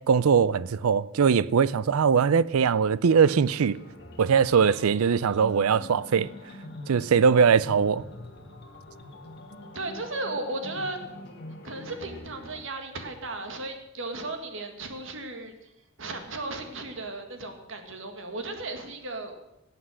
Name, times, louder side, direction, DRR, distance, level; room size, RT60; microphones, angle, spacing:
voice 1, 0.0-3.8 4.2-6.3 6.9-8.0, right 6 dB, 85° right, 0.5 m, -21 dB
sound 1, 3.2-12.6, left 1 dB, 50° left, 1.9 m, -44 dB
voice 2, 4.6-5.4 9.8-11.0 11.6-15.5 16.0-19.3, right 2 dB, 60° right, 1.8 m, -35 dB
17.5 x 7.8 x 6.3 m
head